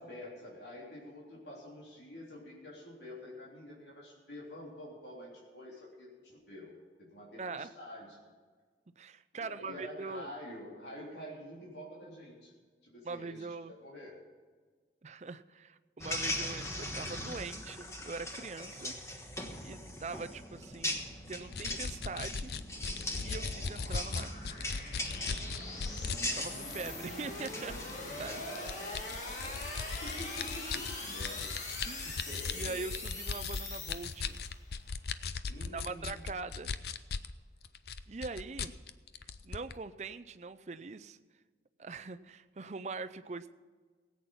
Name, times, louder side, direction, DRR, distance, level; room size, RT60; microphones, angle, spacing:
voice 1, 0.0-6.7 7.0-8.2 9.3-12.5 12.8-13.4 13.7-14.1 28.2-28.7 29.4-29.7 30.0-31.6 32.0-32.8 35.5-36.2, left 1 dB, 80° left, -4 dB, 3.5 m, -47 dB
voice 2, 7.4-7.7 9.0-10.3 13.0-13.7 15.0-19.3 19.6-22.5 23.2-24.4 26.3-27.8 28.2-28.4 31.8-32.1 32.5-34.4 35.7-36.7 38.1-38.8 39.4-41.2 41.8-43.5, right 4 dB, 40° right, 11 dB, 0.5 m, -42 dB
sound 1, 16.0-28.4, left 1 dB, 15° left, 1.3 m, -40 dB
sound 2, 20.2-34.6, left 2 dB, 45° left, 2.4 m, -43 dB
sound 3, 21.5-26.2 26.7-26.9 27.4-27.9 28.5-37.3 37.6-39.7, left 5 dB, 65° left, 0.6 m, -38 dB
17.5 x 8.6 x 5.6 m, 1.5 s
head